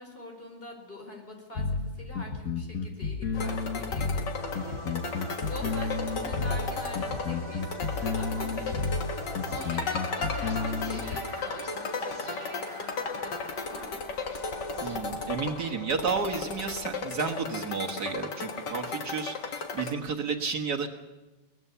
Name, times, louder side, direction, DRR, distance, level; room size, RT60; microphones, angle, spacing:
voice 1, 0.0-14.0, left 1 dB, 30° left, 2 dB, 5.0 m, -44 dB
sound 1, 1.6-11.2, left 4 dB, 55° left, 1.7 m, -31 dB
sound 2, 3.3-19.9, left 4 dB, 80° left, 2.3 m, -35 dB
sound 3, 4.3-15.0, right 2 dB, 15° right, 1.7 m, -43 dB
voice 2, 14.8-20.9, right 5 dB, 65° right, 2 dB, 2.1 m, -32 dB
22.5 x 19.0 x 6.9 m, 1.1 s
omnidirectional pair, 1.8 m